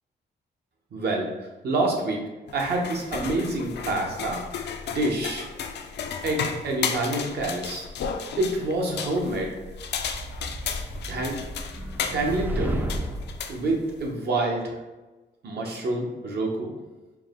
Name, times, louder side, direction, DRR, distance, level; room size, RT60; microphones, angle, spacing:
voice 1, 0.9-1.3 1.6-2.2 2.5-4.4 4.9-5.4 6.2-7.9 8.4-9.5 11.1-11.4 12.1-12.8 13.5-14.7 15.4-16.7, right 2 dB, 65° right, 0 dB, 0.9 m, -27 dB
sound 1, 2.5-14.1, left 6 dB, 70° left, 0.4 m, -34 dB
sound 2, 9.7-13.4, right 1 dB, 10° right, 0.4 m, -33 dB
4.6 x 2.1 x 3.6 m, 1.1 s
cardioid pair, 85°, 19 cm